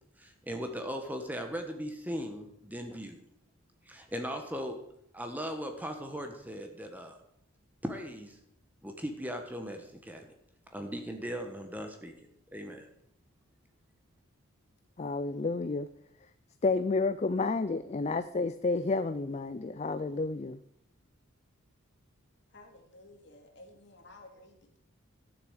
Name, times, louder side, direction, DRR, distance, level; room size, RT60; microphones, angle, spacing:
voice 1, 0.2-3.2 3.8-4.8 5.1-7.2 7.8-8.4 8.8-10.3 10.7-12.1 12.5-12.9, equal, 10° right, 5 dB, 1.3 m, -38 dB
voice 2, 15.0-15.9 16.6-20.6, left 3 dB, 30° left, 12 dB, 0.4 m, -30 dB
voice 3, 22.5-24.8, left 2 dB, 55° left, 3 dB, 2.4 m, -54 dB
12.0 x 7.0 x 7.9 m, 0.73 s
head